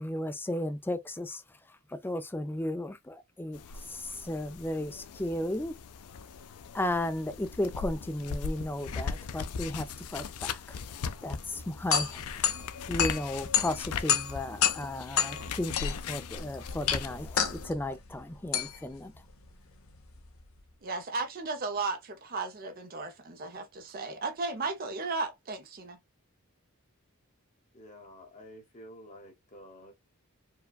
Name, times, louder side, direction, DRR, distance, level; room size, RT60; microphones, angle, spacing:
voice 1, 0.0-1.4 1.9-3.6 3.9-5.8 6.7-9.9 10.1-10.6 11.2-12.2 12.9-19.1, left 1 dB, 10° left, 0.3 m, -34 dB
sound 1, 3.5-17.6, left 5 dB, 85° left, 0.4 m, -39 dB
sound 2, 11.4-20.6, left 9 dB, 65° left, 0.8 m, -31 dB
voice 2, 20.8-26.0, right 3 dB, 40° right, 0.6 m, -35 dB
voice 3, 27.7-29.9, equal, 35° left, 1.1 m, -50 dB
4.6 x 2.2 x 2.3 m
head